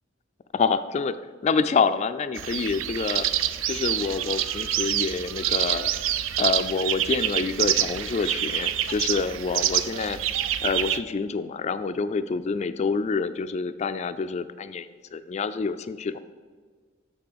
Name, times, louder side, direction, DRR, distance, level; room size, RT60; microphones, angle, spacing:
voice 1, 0.5-1.2 1.4-3.3 3.6-5.9 6.4-10.2 10.6-16.2, left 5 dB, 35° left, 11 dB, 0.3 m, -27 dB
sound 1, 2.4-11.0, right 11 dB, 80° right, 0.4 m, -27 dB
6.7 x 5.9 x 6.8 m, 1.5 s
head